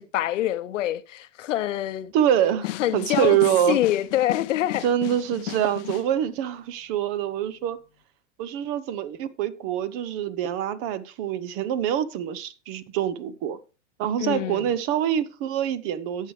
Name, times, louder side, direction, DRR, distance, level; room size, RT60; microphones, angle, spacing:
voice 1, 0.0-2.1 2.8-3.4 3.7-4.8 14.2-14.7, left 13 dB, 75° left, 0.8 m, -25 dB
voice 2, 2.1-3.8 4.8-7.8 8.4-13.6 14.0-16.3, right 10 dB, 35° right, 0.7 m, -25 dB
sound 1, 2.6-6.1, left 17 dB, 50° left, 0.6 m, -35 dB
17.0 x 6.5 x 3.2 m
hypercardioid pair, 130°, 37 cm